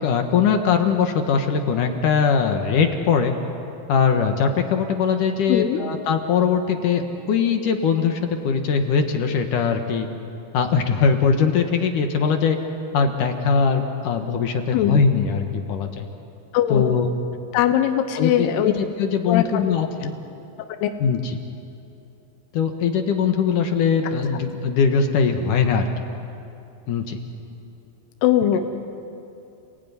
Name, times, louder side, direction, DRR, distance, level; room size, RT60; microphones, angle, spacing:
voice 1, 0.0-3.3 3.9-10.1 10.5-12.6 12.9-16.1 16.7-17.1 18.2-20.1 21.0-21.4 22.5-25.9 26.9-27.2, left 6 dB, 60° left, 5 dB, 2.6 m, -21 dB
voice 2, 5.5-5.8 14.7-15.0 16.5-17.0 17.5-18.7 19.3-19.6 20.8-20.9 28.2-28.6, left 10 dB, 80° left, 7 dB, 3.1 m, -20 dB
30.0 x 20.5 x 9.7 m, 2.7 s
omnidirectional pair, 4.6 m